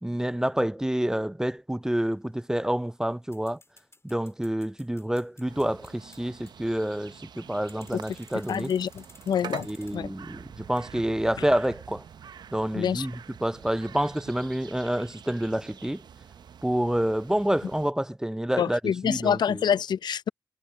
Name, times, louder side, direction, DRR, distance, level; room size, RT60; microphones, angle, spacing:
voice 1, 0.0-3.6 4.0-8.7 9.6-12.0 12.5-16.0 16.6-19.6, right 1 dB, 10° right, 0.4 m, -28 dB
sound 1, 1.8-10.0, left 3 dB, 35° left, 3.1 m, -57 dB
sound 2, 5.5-17.9, right 8 dB, 80° right, 0.6 m, -46 dB
voice 2, 8.5-9.7 9.9-10.1 12.7-13.1 18.6-20.3, left 8 dB, 85° left, 0.4 m, -26 dB
cardioid pair, 40°, 7 cm